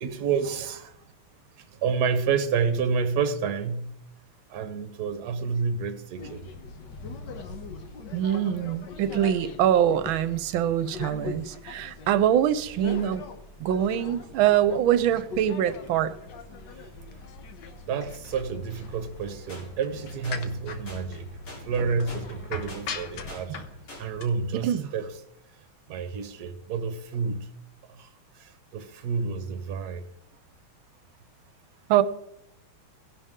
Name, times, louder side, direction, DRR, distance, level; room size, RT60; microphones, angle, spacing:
voice 1, 0.0-0.9 1.6-4.0 4.5-6.5 17.8-21.3 21.7-23.6 24.0-25.1 25.9-27.5 27.9-28.1 28.3-30.1, right 5 dB, 55° right, 1.3 m, -29 dB
sound 1, 6.2-24.3, left 4 dB, 60° left, 1.6 m, -41 dB
voice 2, 8.1-13.2 13.6-16.1 24.5-24.9 31.9-32.0, right 10 dB, 75° right, 1.4 m, -24 dB
sound 2, 19.5-19.6 20.2-20.4 20.9-21.0 21.5-21.6 22.1-22.2 22.7-22.8 23.3-23.4 23.9-24.0, left 1 dB, 90° left, 4.9 m, -43 dB
17.5 x 11.0 x 3.7 m
omnidirectional pair, 2.4 m